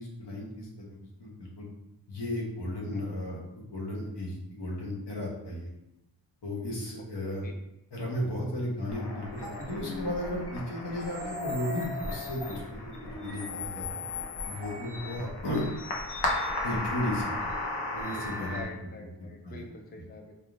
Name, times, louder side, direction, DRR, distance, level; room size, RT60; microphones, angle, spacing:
voice 1, 0.0-1.6 2.1-5.7 6.4-7.4 7.9-12.6 13.2-13.9 14.5-15.6 16.6-17.3 17.9-18.6 19.4-19.6, left 1 dB, 90° left, -3 dB, 1.2 m, -34 dB
sound 1, 8.9-18.6, left 2 dB, 75° left, 0.9 m, -35 dB
voice 2, 18.4-20.3, left 2 dB, 25° left, 3 dB, 0.4 m, -45 dB
4.1 x 3.5 x 2.5 m, 0.88 s
wide cardioid pair, 135°, 40 cm